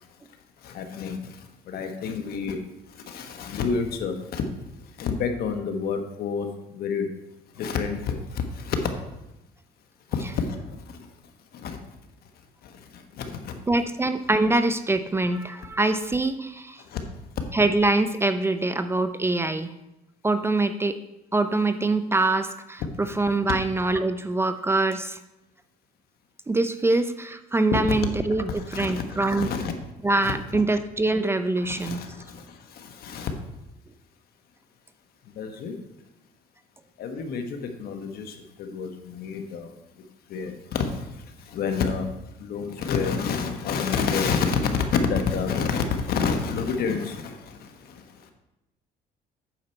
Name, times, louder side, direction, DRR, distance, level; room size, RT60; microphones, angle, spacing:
voice 1, 0.6-1.2 1.7-2.6 3.1-4.4 5.0-6.5 6.7-7.1 7.6-8.8 10.1-10.6 11.6-11.8 13.2-13.5 16.9-17.0 28.6-29.7 30.2-30.6 31.6-32.4 32.7-33.3 35.4-35.7 37.0-39.7 40.3-41.0 41.5-42.1 42.4-47.7, left 5 dB, 65° left, 5 dB, 1.3 m, -28 dB
voice 2, 13.7-16.8 17.5-19.7 20.2-21.0 21.3-25.2 26.5-29.5 30.0-32.0 38.7-38.8, right 2 dB, 15° right, 10 dB, 0.5 m, -24 dB
9.0 x 6.6 x 4.4 m, 0.91 s
cardioid pair, 110°, 17 cm